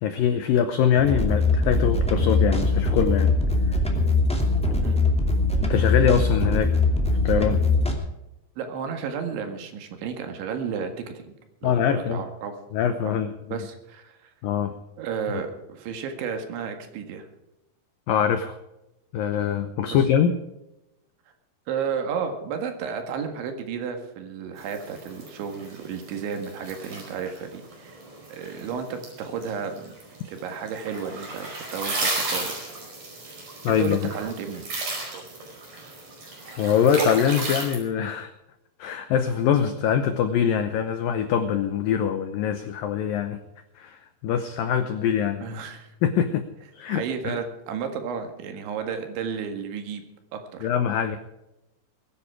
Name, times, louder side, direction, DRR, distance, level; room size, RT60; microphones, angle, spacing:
voice 1, 0.0-3.3 3.7-3.8 5.6-6.7 7.2-7.6 11.6-12.2 12.7-13.6 14.4-14.7 18.1-18.6 19.1-20.3 33.6-34.0 36.6-38.3 38.8-43.4 43.8-45.4 46.0-46.5 46.7-47.3 50.6-51.2, left 8 dB, 85° left, 9 dB, 2.0 m, -23 dB
sound 1, 1.0-7.9, left 2 dB, 5° left, 0.6 m, -22 dB
voice 2, 8.6-11.2 11.6-12.5 13.0-13.2 13.5-14.3 15.0-17.3 19.9-20.0 21.7-28.0 28.3-29.9 30.3-32.5 33.3-33.4 33.7-34.7 35.0-35.2 45.4-45.9 46.9-50.0 50.3-50.7, right 6 dB, 80° right, 6 dB, 4.2 m, -32 dB
sound 2, 24.6-37.8, right 2 dB, 45° right, 6.0 m, -34 dB
22.5 x 10.0 x 4.9 m, 0.93 s
omnidirectional pair, 5.2 m